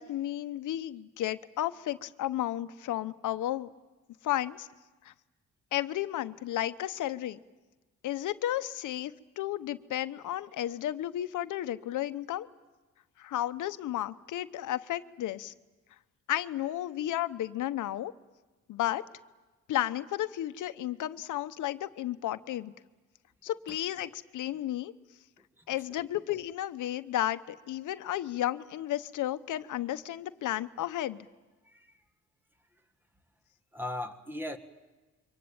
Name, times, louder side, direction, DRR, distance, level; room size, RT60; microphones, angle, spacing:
voice 1, 0.0-3.7 4.2-4.7 5.0-5.1 5.7-7.4 8.0-9.1 9.4-12.5 13.2-15.5 16.3-18.1 18.7-19.0 19.7-22.7 23.4-24.9 25.7-31.3, left 13 dB, 85° left, 12 dB, 0.9 m, -33 dB
voice 2, 31.6-31.9 32.7-32.8 33.7-34.6, left 1 dB, 5° right, 8 dB, 1.7 m, -39 dB
27.5 x 24.0 x 8.9 m, 1.2 s
cardioid pair, 140°, 30 cm